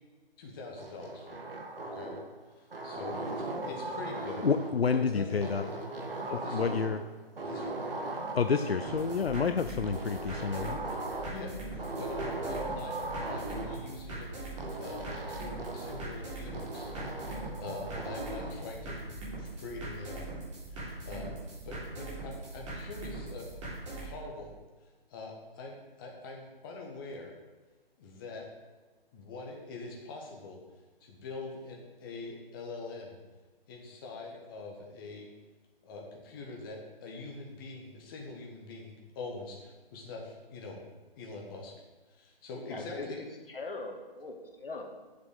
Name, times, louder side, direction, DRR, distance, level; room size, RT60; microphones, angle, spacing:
voice 1, 0.4-1.4 1.9-2.1 2.5-4.5 4.9-5.7 6.3-6.7 7.4-7.8 11.3-16.9 17.2-19.0 19.4-20.3 20.7-21.3 21.6-24.5 25.1-27.3 28.0-28.5 29.1-30.6 31.0-33.2 33.7-35.3 35.8-40.8 41.2-41.8 42.2-43.2, left 3 dB, 20° left, 0 dB, 1.3 m, -44 dB
sound 1, 0.8-2.3 2.7-4.8 5.4-7.1 7.4-9.4 9.8-11.4 11.8-13.8 14.6-16.1 16.5-18.6, right 2 dB, 70° right, 1.8 m, -38 dB
voice 2, 4.4-5.6 6.5-7.0 8.3-10.8, left 5 dB, 80° left, 8 dB, 0.6 m, -29 dB
sound 2, 8.9-24.1, right 2 dB, 30° right, 3.4 m, -41 dB
voice 3, 42.7-44.8, left 3 dB, 65° left, 2 dB, 1.9 m, -41 dB
7.5 x 6.9 x 6.5 m, 1.3 s
figure-of-eight pair, 145°, 30 cm